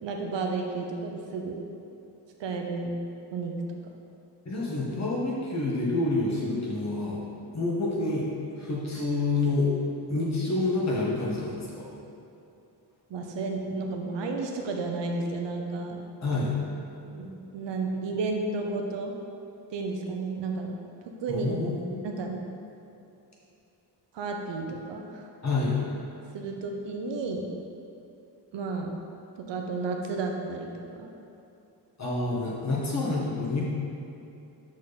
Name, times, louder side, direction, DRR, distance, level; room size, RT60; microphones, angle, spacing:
voice 1, 0.0-1.6 2.4-2.9 3.3-3.5 13.1-16.0 17.0-19.1 19.7-20.8 21.2-21.5 22.0-22.4 24.1-25.3 26.3-27.5 28.5-28.9 29.4-31.1, right 3 dB, 90° right, 2 dB, 0.9 m, -32 dB
voice 2, 4.4-7.2 7.5-8.3 8.6-9.7 10.1-11.9 16.2-16.5 21.3-22.0 25.4-25.8 32.0-33.6, left 2 dB, 40° left, -5 dB, 1.6 m, -28 dB
6.4 x 6.3 x 4.2 m, 2.8 s
wide cardioid pair, 135°, 42 cm